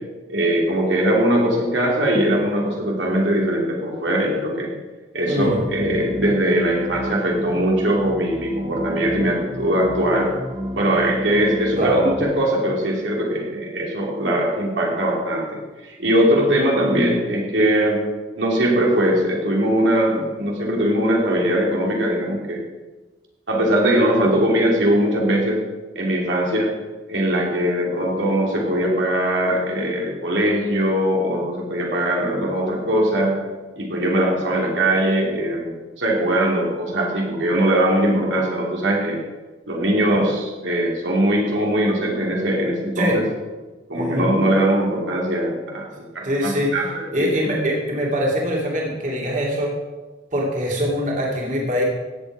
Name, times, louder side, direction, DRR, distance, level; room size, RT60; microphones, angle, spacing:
voice 1, 0.3-4.7 5.1-10.3 10.7-18.1 18.4-22.6 23.5-25.6 25.9-26.7 27.1-33.4 33.8-39.2 39.7-43.2 43.9-45.9 46.1-47.5, right 1 dB, 85° right, -2 dB, 2.8 m, -21 dB
voice 2, 5.3-5.6 11.8-12.0 43.0-43.2 43.9-44.3 46.2-46.7 47.1-49.8 50.3-51.8, equal, 45° right, -3 dB, 2.7 m, -23 dB
sound 1, 5.4-12.2, equal, 25° right, 1.4 m, -32 dB
16.0 x 8.0 x 4.9 m, 1.2 s
head